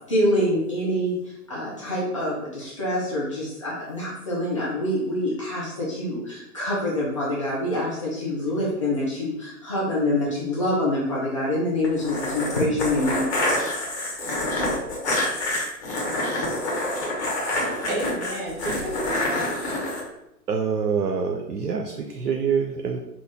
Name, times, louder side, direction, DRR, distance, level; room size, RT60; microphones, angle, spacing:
voice 1, 0.0-13.3, left 1 dB, 20° left, -7 dB, 0.4 m, -26 dB
sound 1, 11.8-20.0, left 1 dB, 45° left, 1.2 m, -27 dB
voice 2, 17.2-19.5, right 1 dB, 35° right, -1 dB, 1.0 m, -32 dB
voice 3, 20.5-23.0, right 6 dB, 80° right, 3 dB, 0.6 m, -25 dB
3.8 x 2.3 x 3.3 m, 0.86 s
figure-of-eight pair, 120°, 47 cm